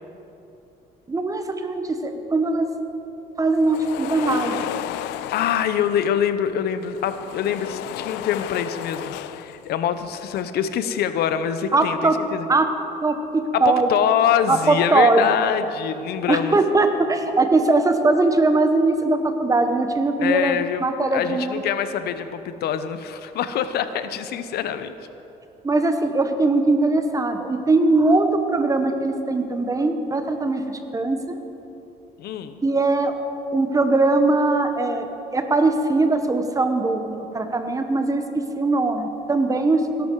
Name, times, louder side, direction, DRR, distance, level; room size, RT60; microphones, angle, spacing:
voice 1, 1.1-2.7 3.4-4.6 11.7-12.2 12.5-12.7 13.0-13.9 14.5-15.3 16.3-21.6 25.6-31.4 32.6-33.1 33.5-35.1 35.3-38.2 38.5-40.1, right 2 dB, 20° right, 7 dB, 1.1 m, -20 dB
sound 1, 3.6-6.1 6.8-9.7 10.0-10.4, left 14 dB, 90° left, 0.4 m, -33 dB
voice 2, 5.3-12.5 13.5-16.6 20.2-24.9 32.2-32.6, left 9 dB, 70° left, 11 dB, 0.8 m, -24 dB
17.5 x 11.5 x 4.7 m, 3.0 s
cardioid pair, 110°, 17 cm